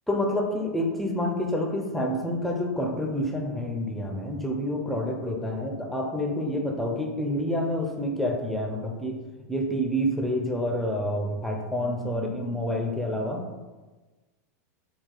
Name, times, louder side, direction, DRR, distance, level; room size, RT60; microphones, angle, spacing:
voice 1, 0.1-9.2 9.5-13.4, left 1 dB, ahead, 1 dB, 0.6 m, -28 dB
4.9 x 2.4 x 3.8 m, 1.2 s
supercardioid pair, 125°, 8 cm